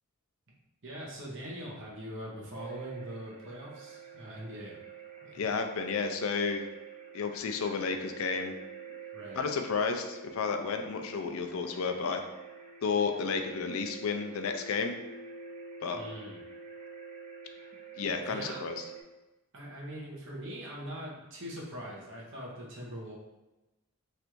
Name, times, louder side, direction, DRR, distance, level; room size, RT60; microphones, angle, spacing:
voice 1, 0.8-4.8 5.2-5.4 9.1-9.5 15.9-16.4 18.0-18.6 19.5-23.1, equal, 60° right, -4 dB, 1.0 m, -42 dB
sound 1, 2.5-19.0, right 6 dB, 30° right, 0.7 m, -47 dB
voice 2, 5.3-6.7 7.1-8.5 9.4-12.2 12.8-15.0 15.8-16.0 18.0-18.8, left 5 dB, 65° left, 5 dB, 0.4 m, -32 dB
3.2 x 2.5 x 4.4 m, 1.0 s
head